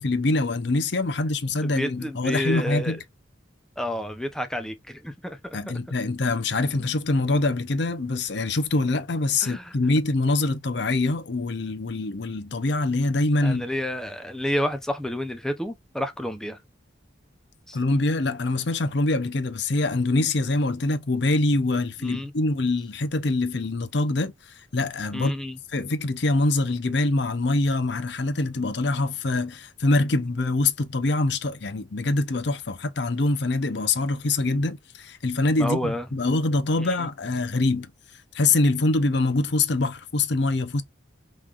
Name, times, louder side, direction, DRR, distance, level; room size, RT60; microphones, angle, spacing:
voice 1, 0.0-3.0 5.5-13.7 17.7-24.3 24.7-25.4 25.7-37.9 38.3-40.8, left 2 dB, 60° left, 0.7 m, -24 dB
voice 2, 1.6-3.0 3.8-5.6 9.4-9.8 13.4-16.6 17.7-17.8 22.0-22.3 25.1-25.6 35.6-36.1 36.8-37.1, equal, 5° left, 0.6 m, -30 dB
5.6 x 3.2 x 2.4 m
head